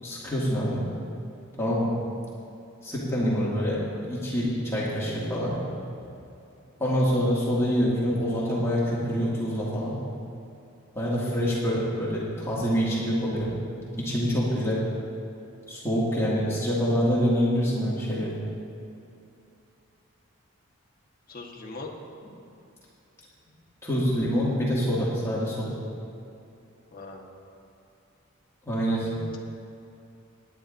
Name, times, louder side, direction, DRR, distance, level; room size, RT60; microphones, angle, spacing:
voice 1, 0.0-0.8 1.6-1.9 2.8-3.8 4.0-5.5 6.8-10.0 10.9-13.6 14.0-14.8 15.7-18.3 23.8-25.8 28.7-29.2, equal, 15° left, -8 dB, 2.1 m, -26 dB
voice 2, 21.3-21.9 26.9-27.2 28.9-29.0, left 3 dB, 45° left, -1 dB, 1.3 m, -41 dB
19.5 x 10.5 x 2.6 m, 2.7 s
head